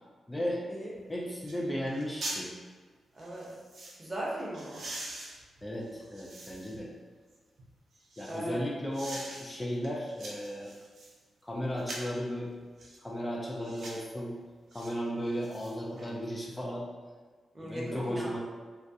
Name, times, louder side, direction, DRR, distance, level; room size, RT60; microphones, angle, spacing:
voice 1, 0.3-0.6 1.1-2.5 5.6-6.9 8.2-10.7 11.4-12.6 13.0-14.4 14.7-16.8 17.6-18.4, equal, 15° left, -3 dB, 0.3 m, -35 dB
sound 1, 0.9-1.0 1.4-1.6 1.9-2.4 3.2-4.0 4.5-6.8 7.3-8.4 8.9-9.4 9.8-11.2 11.8-12.2 12.8-13.0 13.6-14.1 14.7-14.9 15.3-16.1 16.4-16.5, right 2 dB, 70° right, 0.5 m, -43 dB
voice 2, 3.1-3.5 4.0-4.8 8.3-8.6 17.5-18.4, right 1 dB, 35° right, -5 dB, 0.8 m, -38 dB
2.3 x 2.1 x 2.6 m, 1.5 s
cardioid pair, 70°, 0 cm